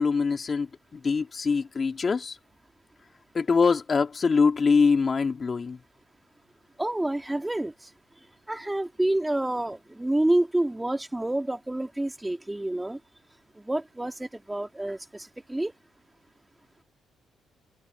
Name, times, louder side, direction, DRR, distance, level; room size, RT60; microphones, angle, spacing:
voice 1, 0.0-2.4 3.3-5.8, left 5 dB, 40° left, 2.7 m, -24 dB
voice 2, 6.8-7.7 8.5-13.0 13.6-15.7, right 1 dB, 10° right, 2.2 m, -28 dB
cardioid pair, 90°, 0 cm